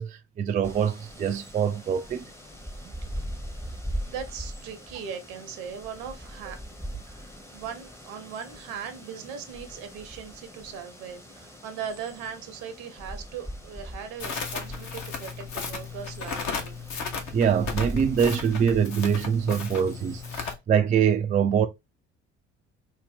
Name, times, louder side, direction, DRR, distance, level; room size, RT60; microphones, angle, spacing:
voice 1, 0.0-2.2 17.3-21.7, right 7 dB, 20° right, 0.3 m, -24 dB
sound 1, 0.6-20.4, equal, 5° left, 0.8 m, -41 dB
voice 2, 4.1-6.6 7.5-16.8, right 7 dB, 70° right, 0.8 m, -39 dB
Crackle, 14.2-20.5, left 5 dB, 50° left, 0.9 m, -35 dB
2.7 x 2.1 x 3.5 m
figure-of-eight pair, 50°, 36 cm